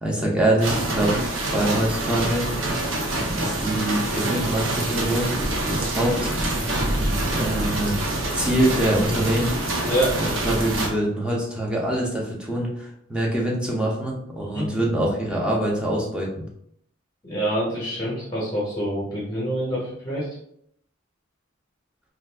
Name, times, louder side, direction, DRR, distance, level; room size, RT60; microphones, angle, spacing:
voice 1, 0.0-2.4 3.4-5.4 5.7-6.3 7.3-8.0 8.3-9.5 10.2-16.4, right 1 dB, 5° right, -3 dB, 0.6 m, -24 dB
sound 1, 0.6-10.9, right 1 dB, 65° right, 0.6 m, -26 dB
voice 2, 9.8-10.3 14.4-14.6 17.2-20.3, right 1 dB, 20° left, -6 dB, 0.8 m, -26 dB
2.5 x 2.4 x 3.3 m, 0.71 s
head